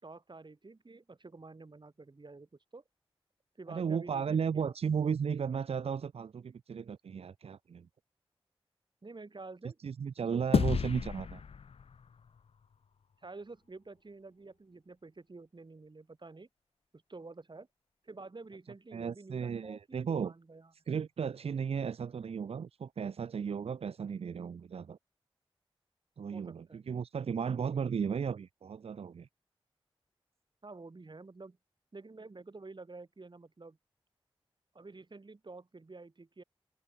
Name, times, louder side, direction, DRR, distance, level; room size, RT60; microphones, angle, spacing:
voice 1, 0.0-2.8 3.6-4.8 5.0-5.1 9.0-9.8 10.2-10.6 13.2-16.5 16.9-17.7 18.0-20.7 26.3-26.9 30.6-31.6 31.9-33.8 34.7-36.4, right 3 dB, 50° right, 5.8 m, -49 dB
voice 2, 3.7-7.9 9.8-11.4 18.9-20.3 20.9-25.0 26.2-29.3, right 6 dB, 85° right, 0.6 m, -35 dB
sound 1, 10.5-13.1, left 6 dB, 80° left, 0.7 m, -33 dB
open air
cardioid pair, 50°, 10 cm